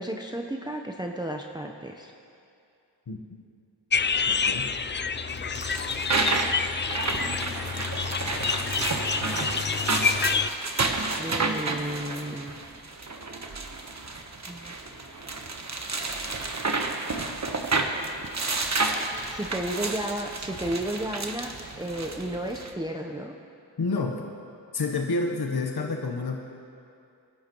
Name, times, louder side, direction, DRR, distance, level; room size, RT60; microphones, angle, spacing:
voice 1, 0.0-2.1 11.2-12.5 14.4-14.7 19.3-21.5 21.8-23.4, right 1 dB, 10° right, 2 dB, 0.8 m, -33 dB
voice 2, 3.1-3.4 4.3-4.7 23.8-24.3 24.7-26.4, left 3 dB, 55° left, 2 dB, 1.1 m, -29 dB
sound 1, 3.9-10.5, left 5 dB, 25° left, 0.4 m, -28 dB
sound 2, 5.3-22.7, right 3 dB, 35° right, 1.2 m, -30 dB
23.0 x 11.5 x 3.0 m, 2.5 s
cardioid pair, 50°, 45 cm